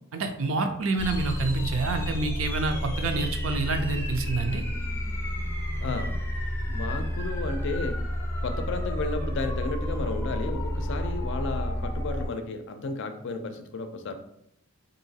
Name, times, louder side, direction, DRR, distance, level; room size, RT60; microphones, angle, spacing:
voice 1, 0.1-4.6, right 3 dB, 70° right, 6 dB, 0.5 m, -28 dB
sound 1, 1.0-12.3, equal, 10° left, 0.5 m, -30 dB
voice 2, 5.8-6.2 6.7-7.9 8.4-14.1, left 3 dB, 60° left, 7 dB, 0.4 m, -33 dB
3.8 x 2.6 x 2.7 m, 0.76 s
head